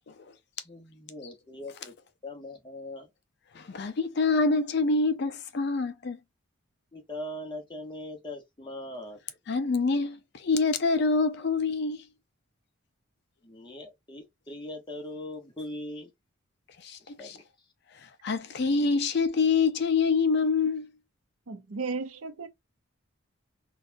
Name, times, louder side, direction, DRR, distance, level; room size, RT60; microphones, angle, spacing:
voice 1, 0.6-1.9 2.2-3.1 6.9-9.2 13.4-16.1 17.0-17.4, left 1 dB, 20° left, 0.8 m, -40 dB
voice 2, 3.6-6.2 9.5-12.0 16.8-17.0 17.2-17.4 18.2-20.9, left 4 dB, 50° left, 0.4 m, -26 dB
voice 3, 21.5-22.5, right 4 dB, 80° right, 0.6 m, -34 dB
3.9 x 2.2 x 2.5 m
head